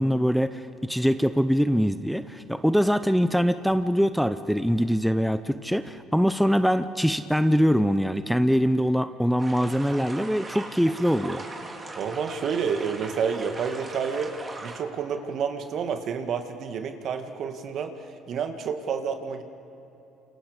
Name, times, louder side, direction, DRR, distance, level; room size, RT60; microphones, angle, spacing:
voice 1, 0.0-11.4, equal, ahead, 10 dB, 0.8 m, -23 dB
sound 1, 9.4-14.8, right 2 dB, 25° right, 3.8 m, -39 dB
voice 2, 12.0-14.4 14.6-19.4, right 6 dB, 60° right, 6 dB, 1.9 m, -29 dB
29.5 x 27.5 x 5.2 m, 3.0 s
supercardioid pair, 85°, 0 cm